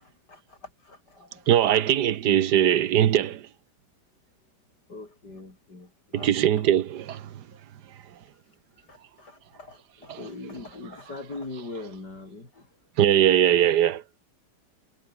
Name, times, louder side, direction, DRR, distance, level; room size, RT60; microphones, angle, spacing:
voice 1, 0.0-1.5 1.8-2.0 4.9-6.3 6.6-6.7 7.5-7.6 8.4-12.8, left 2 dB, 85° left, 6.0 m, -42 dB
voice 2, 1.5-3.5 6.2-7.3 10.1-10.2 13.0-14.0, right 10 dB, 85° right, 1.6 m, -21 dB
omnidirectional pair, 1.8 m